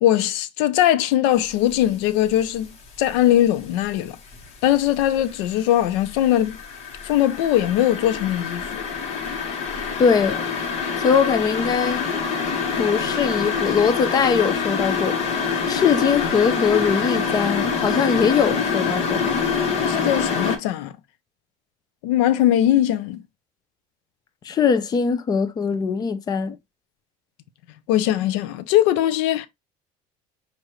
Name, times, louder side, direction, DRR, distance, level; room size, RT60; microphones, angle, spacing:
voice 1, 0.0-2.7 3.0-4.2 4.6-6.6 7.0-8.8 19.8-20.9 22.0-23.2 27.9-29.5, left 12 dB, 85° left, 0.5 m, -20 dB
sound 1, 1.5-1.9 2.3-3.8 4.2-20.6, left 5 dB, 45° left, 1.3 m, -26 dB
voice 2, 10.0-10.4 11.0-12.1 12.8-15.2 15.7-19.3 24.4-26.6, left 6 dB, 25° left, 0.5 m, -21 dB
6.3 x 2.6 x 3.0 m
cardioid pair, 140°, 14 cm